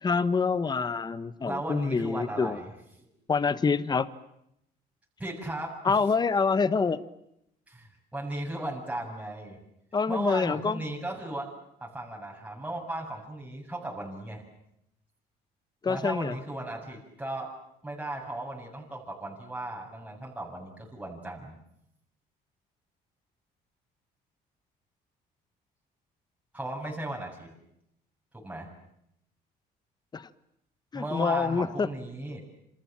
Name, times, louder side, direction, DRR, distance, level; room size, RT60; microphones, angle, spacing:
voice 1, 0.0-2.6 3.3-4.1 5.8-7.0 9.9-10.8 15.8-16.3 30.1-30.3 30.9-31.9, left 5 dB, 25° left, 15 dB, 1.2 m, -26 dB
voice 2, 1.4-2.7 3.0-3.1 5.2-5.9 7.7-9.6 10.1-11.5 11.8-14.4 15.9-17.5 17.8-21.5 26.5-27.5 28.3-28.7 30.9-32.5, right 1 dB, 10° right, -1 dB, 7.4 m, -36 dB
28.0 x 27.5 x 7.5 m, 0.79 s
cardioid pair, 110°, 17 cm